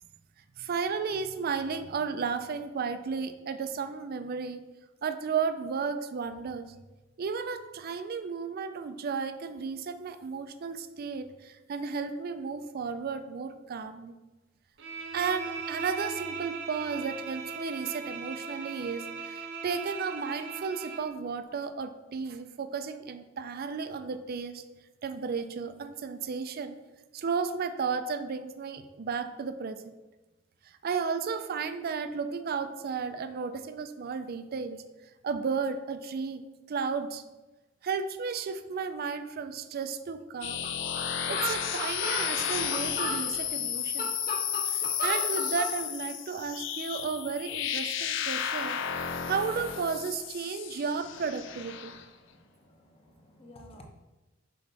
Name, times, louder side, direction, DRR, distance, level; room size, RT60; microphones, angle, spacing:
voice 1, 0.6-4.6 5.0-6.7 7.2-14.1 15.1-24.6 25.0-26.8 27.1-29.8 30.8-34.8 35.2-37.2 37.8-40.6 41.3-44.2 44.6-48.8 49.2-51.9, right 5 dB, 50° right, 10 dB, 0.4 m, -33 dB
Bowed string instrument, 14.8-21.2, right 5 dB, 65° right, 0.9 m, -39 dB
sound 1, 40.4-52.0, left 8 dB, 65° left, 0.5 m, -33 dB
sound 2, 40.6-40.7 41.0-41.1 41.3-43.2 43.7-45.7, equal, 50° left, 1.4 m, -34 dB
voice 2, 51.9-53.8, left 1 dB, 30° left, 2 dB, 0.9 m, -54 dB
6.2 x 4.5 x 4.0 m, 1.1 s
head